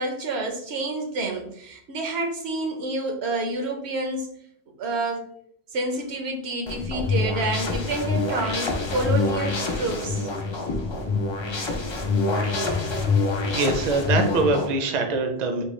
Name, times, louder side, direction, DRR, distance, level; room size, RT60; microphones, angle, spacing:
voice 1, 0.0-4.3 4.8-5.3 5.7-10.3, right 2 dB, 80° right, 2 dB, 1.0 m, -28 dB
sound 1, 6.7-14.7, left 3 dB, 45° left, 0.4 m, -26 dB
voice 2, 13.5-15.6, right 3 dB, 50° right, 5 dB, 0.6 m, -23 dB
3.6 x 2.3 x 3.0 m, 0.70 s
omnidirectional pair, 1.1 m